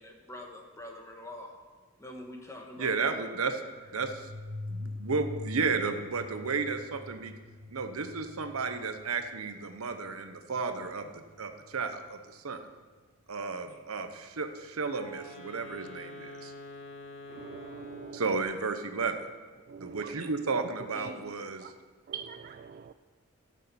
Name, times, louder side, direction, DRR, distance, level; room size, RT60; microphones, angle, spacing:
voice 1, 0.0-1.6 2.0-3.1 20.9-21.2, left 1 dB, 15° left, 1 dB, 1.6 m, -45 dB
voice 2, 2.8-3.6 3.9-4.3 4.7-7.3 7.7-12.6 13.3-16.5 18.1-19.1 19.8-21.7, right 4 dB, 85° right, 7 dB, 0.9 m, -33 dB
sound 1, 3.7-12.1, left 2 dB, 65° right, 1.7 m, -44 dB
Wind instrument woodwind instrument, 14.8-18.5, left 1 dB, 65° left, 2.7 m, -46 dB
voice 3, 17.4-18.2 19.7-20.0 22.1-22.9, right 7 dB, 45° right, 9 dB, 0.3 m, -43 dB
12.5 x 6.5 x 6.9 m, 1.4 s
head